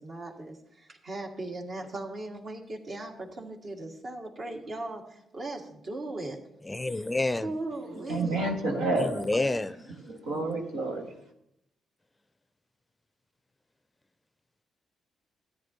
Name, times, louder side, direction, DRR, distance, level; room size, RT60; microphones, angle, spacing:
voice 1, 0.0-6.4 6.9-7.1 7.4-8.5, right 2 dB, 55° right, 0 dB, 1.9 m, -38 dB
voice 2, 6.6-7.5 9.0-9.8, left 2 dB, 20° left, 14 dB, 0.5 m, -28 dB
voice 3, 8.1-9.4 10.1-11.1, right 2 dB, 85° right, 1 dB, 1.3 m, -29 dB
13.5 x 9.0 x 2.8 m, 0.79 s
hypercardioid pair, 45°, 0 cm